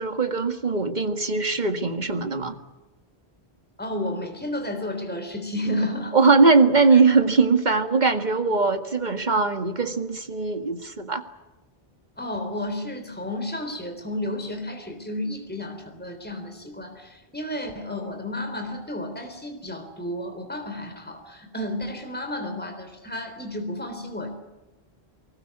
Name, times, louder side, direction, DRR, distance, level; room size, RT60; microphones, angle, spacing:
voice 1, 0.0-2.6 6.1-11.2, right 4 dB, 45° right, 8 dB, 2.0 m, -20 dB
voice 2, 3.8-6.2 6.9-7.0 12.2-24.3, left 1 dB, 10° left, 5 dB, 3.7 m, -32 dB
23.5 x 20.5 x 9.7 m, 1.1 s
omnidirectional pair, 1.1 m